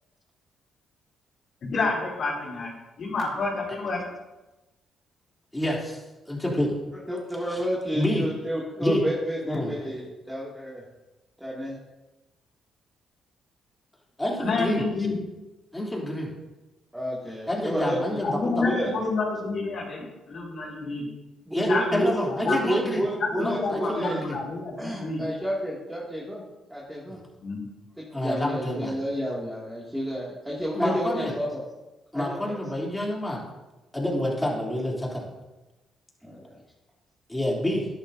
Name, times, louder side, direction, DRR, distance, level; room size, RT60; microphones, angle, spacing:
voice 1, 1.7-4.0 14.4-15.2 18.2-21.1 21.7-22.1 22.4-22.6 23.2-25.2 27.4-27.6, left 3 dB, 60° left, -7 dB, 3.7 m, -29 dB
voice 2, 5.5-6.0 6.3-6.8 7.4-7.6 7.9-8.3 8.8-9.0 9.5-9.7 14.2-14.8 15.7-16.3 17.5-18.6 21.5-23.0 23.4-24.4 27.1-27.2 28.1-28.9 30.7-31.3 32.1-33.4 33.9-35.3 37.3-37.9, left 1 dB, 10° left, -3 dB, 3.1 m, -28 dB
voice 3, 7.1-10.8 11.4-11.8 16.9-18.9 21.5-22.1 22.4-24.2 24.8-26.4 26.7-27.2 28.0-31.6 32.1-32.5 36.2-36.4, equal, 5° right, -6 dB, 2.4 m, -30 dB
11.0 x 11.0 x 2.7 m, 1.1 s
cardioid pair, 90°, 0 cm